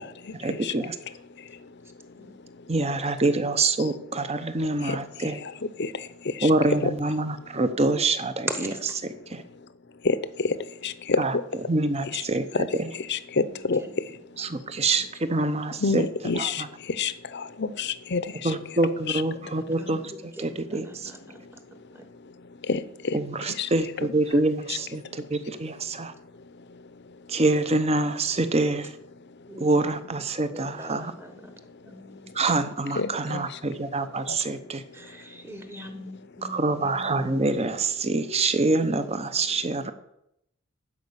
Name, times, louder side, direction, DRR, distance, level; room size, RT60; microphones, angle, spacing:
voice 1, 0.4-0.9 2.7-5.4 6.4-8.5 9.3-9.4 11.2-11.3 11.7-12.4 14.4-16.0 16.4-16.7 18.4-20.0 20.4-21.1 23.1-26.1 27.3-28.9 29.6-31.1 32.3-34.8 36.4-39.9, right 2 dB, 30° right, 0.8 m, -25 dB
voice 2, 6.4-6.9 10.0-10.6 10.8-11.4 12.1-12.2 12.5-12.7 13.1-13.8 15.8-16.6 17.0-18.5 19.1-19.2 22.7-23.1 23.6-23.7 24.7-24.8 33.0-33.5 34.3-34.4, left 4 dB, 55° left, 0.7 m, -27 dB
voice 3, 8.5-9.0 13.5-14.0 14.5-14.7 15.0-15.1 19.4-22.1 29.5-31.5 31.8-32.3 34.9-37.7, right 1 dB, 10° right, 1.2 m, -41 dB
12.5 x 5.3 x 8.2 m
head